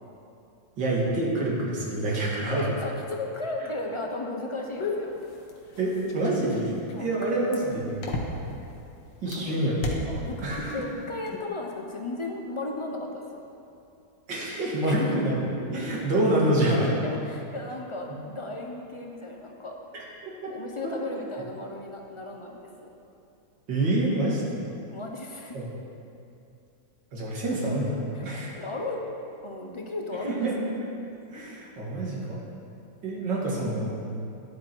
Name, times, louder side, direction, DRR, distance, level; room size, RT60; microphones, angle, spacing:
voice 1, 0.8-2.7 5.8-6.7 7.0-8.0 9.2-9.8 10.0-10.8 14.3-17.0 19.9-20.0 20.4-20.5 20.8-20.9 23.7-24.6 25.5-25.6 27.1-28.5 30.2-30.6 31.3-32.4 33.0-33.9, right 1 dB, 70° right, -4 dB, 2.7 m, -27 dB
voice 2, 2.5-5.1 6.9-7.1 9.3-9.5 10.2-13.5 14.8-15.2 17.0-19.8 20.5-22.6 24.9-25.6 28.1-28.3 28.6-29.0 29.4-30.5 34.3-34.4, left 2 dB, 50° left, 1 dB, 0.3 m, -35 dB
sound 1, 4.8-8.7 9.2-10.7 11.0-11.4, left 3 dB, 85° left, 2.0 m, -33 dB
11.5 x 10.5 x 4.5 m, 2.6 s
omnidirectional pair, 2.0 m